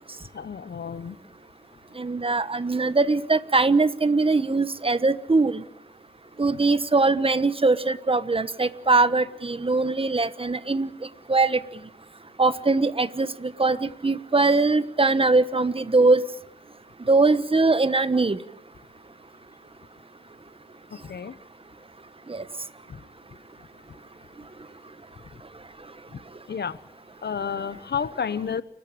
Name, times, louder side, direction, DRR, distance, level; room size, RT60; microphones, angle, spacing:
voice 1, 0.3-1.2 21.0-21.3 26.5-26.8 27.2-28.6, left 6 dB, 70° left, 15 dB, 1.1 m, -30 dB
voice 2, 2.0-5.6 6.4-10.9 11.3-11.6 12.4-16.2 17.1-18.4 22.3-22.4, right 3 dB, 30° right, 14 dB, 1.2 m, -21 dB
29.5 x 12.5 x 9.0 m, 0.75 s
wide cardioid pair, 75°, 18 cm